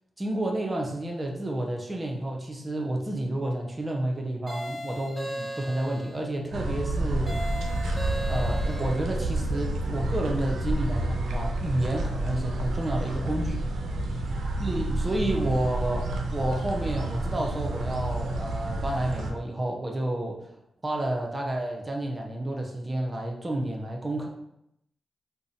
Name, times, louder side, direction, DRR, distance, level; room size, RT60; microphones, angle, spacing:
voice 1, 0.2-7.4 8.3-13.6 14.6-20.5 20.8-24.3, right 1 dB, 25° right, 0 dB, 0.5 m, -30 dB
sound 1, 4.5-6.2 7.3-9.0, equal, ahead, 1.0 m, -37 dB
sound 2, 6.5-19.3, right 1 dB, 80° right, 0.4 m, -29 dB
2.5 x 2.0 x 3.8 m, 0.79 s
cardioid pair, 60°, 0 cm